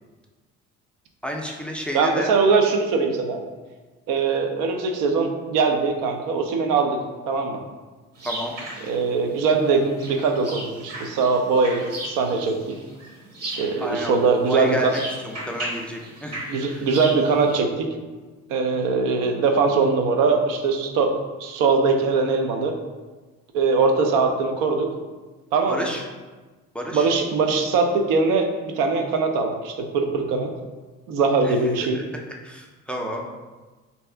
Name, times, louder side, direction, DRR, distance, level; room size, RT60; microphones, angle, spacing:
voice 1, 1.2-2.3 8.2-8.6 13.8-16.9 25.7-26.0 26.7-27.1 31.4-33.3, equal, 5° left, 0 dB, 0.4 m, -31 dB
voice 2, 1.9-3.4 4.1-7.0 7.3-7.6 8.8-12.7 13.4-14.9 16.5-17.9 18.5-21.1 21.4-22.7 23.5-24.9 25.5-25.9 26.9-30.5 31.1-32.0, right 4 dB, 75° right, 3 dB, 0.5 m, -21 dB
sound 1, 8.1-17.6, right 1 dB, 50° right, 1.0 m, -37 dB
2.7 x 2.3 x 3.3 m, 1.3 s
supercardioid pair, 75°, 32 cm